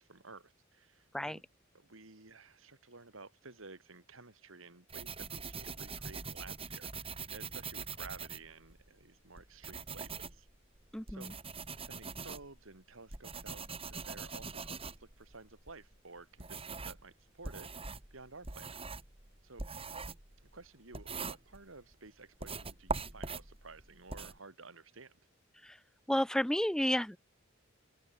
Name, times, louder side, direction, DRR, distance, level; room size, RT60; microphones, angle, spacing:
voice 1, 0.0-1.4 1.7-10.5 11.1-11.4 11.8-18.8 19.4-19.7 20.4-25.2, right 3 dB, 90° right, 2.9 m, -53 dB
sound 1, 4.9-8.9 9.4-17.1 17.4-21.9 22.4-24.4, right 4 dB, 30° right, 2.4 m, -43 dB
voice 2, 10.9-11.3 25.6-25.8 26.1-27.2, equal, 5° left, 0.5 m, -31 dB
open air
head